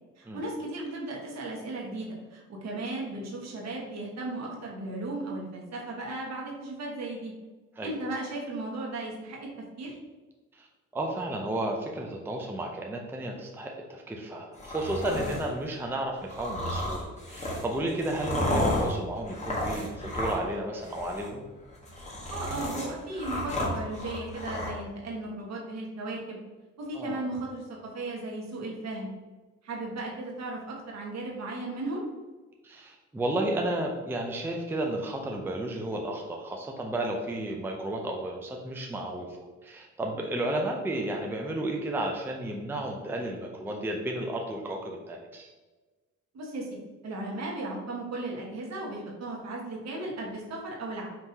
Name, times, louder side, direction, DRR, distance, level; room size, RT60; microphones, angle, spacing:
voice 1, 0.2-7.3 7.8-9.4 9.8-9.9 22.3-26.4 26.8-29.1 29.6-32.0 46.3-51.1, right 2 dB, 60° right, -2 dB, 1.4 m, -36 dB
voice 2, 10.9-21.4 26.9-27.2 32.6-39.4 39.6-45.5, right 1 dB, 5° right, 1 dB, 0.5 m, -32 dB
sound 1, 14.5-15.5 16.3-20.6 20.8-21.3 21.7-24.7, left 1 dB, 25° left, 1.3 m, -32 dB
5.5 x 2.9 x 2.8 m, 1.2 s
cardioid pair, 90°, 30 cm